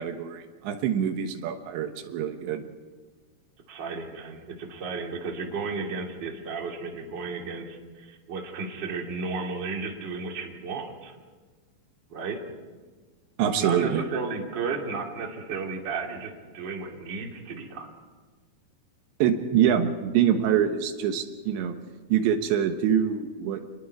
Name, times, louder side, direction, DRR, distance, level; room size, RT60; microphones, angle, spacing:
voice 1, 0.0-2.7 13.4-14.0 19.2-21.8 22.1-23.6, right 9 dB, 80° right, 6 dB, 3.4 m, -25 dB
voice 2, 3.7-11.1 12.1-12.4 13.6-17.9, right 4 dB, 30° right, 0 dB, 2.5 m, -33 dB
28.0 x 21.0 x 4.7 m, 1.4 s
omnidirectional pair, 5.2 m